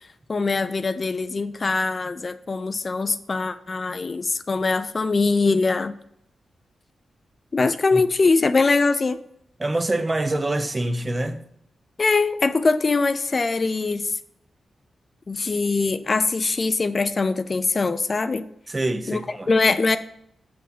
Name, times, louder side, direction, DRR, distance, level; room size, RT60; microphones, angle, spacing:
voice 1, 0.3-5.9 7.5-9.2 12.0-14.1 15.3-18.5 19.1-20.0, left 3 dB, 35° left, 0.4 m, -22 dB
voice 2, 9.6-11.4 18.7-19.5, right 2 dB, 20° right, 0.7 m, -25 dB
7.0 x 6.1 x 5.9 m
wide cardioid pair, 115°, 0 cm